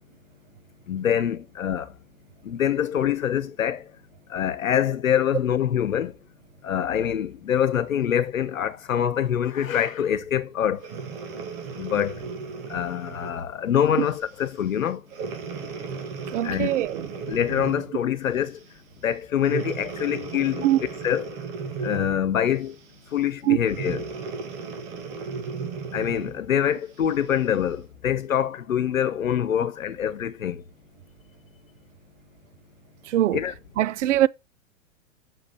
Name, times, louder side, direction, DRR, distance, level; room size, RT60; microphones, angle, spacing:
voice 1, 0.9-1.9 2.4-3.8 4.3-6.1 6.6-10.8 11.8-12.1 12.7-15.0 16.4-16.7 17.3-18.6 19.0-20.7 21.0-21.3 21.8-22.7 23.1-24.0 25.9-30.6 33.3-33.5, left 9 dB, 75° left, 1.2 m, -25 dB
Breathing, 10.8-13.4 14.1-14.3 15.1-18.0 19.4-22.3 23.7-26.4 27.0-27.1, right 5 dB, 45° right, 2.3 m, -35 dB
voice 2, 16.3-17.1 20.6-20.8 23.5-23.6 33.1-33.4 33.8-34.3, right 13 dB, 65° right, 0.6 m, -22 dB
6.3 x 5.2 x 6.4 m
hypercardioid pair, 110°, 40 cm